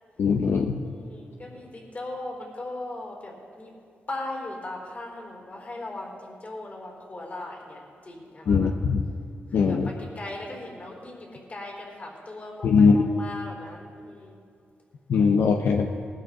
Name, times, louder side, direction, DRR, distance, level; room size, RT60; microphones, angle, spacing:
voice 1, 0.2-0.8 8.5-9.0 9.5-9.9 12.6-13.0 15.1-15.9, left 5 dB, 75° left, 4 dB, 0.7 m, -20 dB
voice 2, 0.8-3.7 4.1-8.7 9.5-14.4, left 2 dB, 40° left, -1 dB, 4.4 m, -38 dB
20.0 x 12.0 x 3.9 m, 2.4 s
cardioid pair, 80°, 4 cm